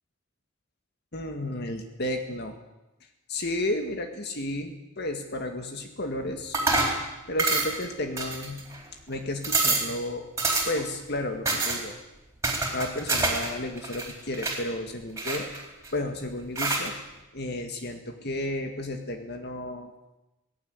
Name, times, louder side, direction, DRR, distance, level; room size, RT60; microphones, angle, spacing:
voice 1, 1.1-2.6 3.3-6.6 7.3-8.7 9.1-10.3 10.7-12.0 12.7-15.5 15.9-17.0 17.3-19.9, left 1 dB, 50° left, 5 dB, 2.0 m, -32 dB
sound 1, 6.5-7.0 7.4-7.8 8.2-8.8 9.1-9.2 9.4-9.9 10.4-10.9 11.5-11.8 12.4-13.5 13.8-14.6 15.2-15.9 16.6-16.9, right 3 dB, 15° right, 4.0 m, -26 dB
18.0 x 16.5 x 9.6 m, 1.0 s
head